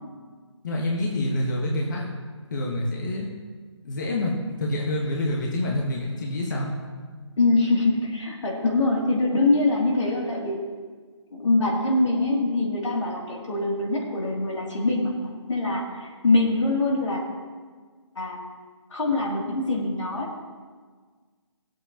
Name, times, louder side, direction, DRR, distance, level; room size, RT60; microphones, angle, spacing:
voice 1, 0.6-2.1 2.5-3.3 3.8-6.7, left 1 dB, 40° left, -2 dB, 1.4 m, -27 dB
voice 2, 7.4-10.6 11.3-17.2 18.1-18.4 18.9-20.3, left 2 dB, 80° left, -2 dB, 2.9 m, -24 dB
17.0 x 7.8 x 3.0 m, 1.5 s
hypercardioid pair, 165°, 15 cm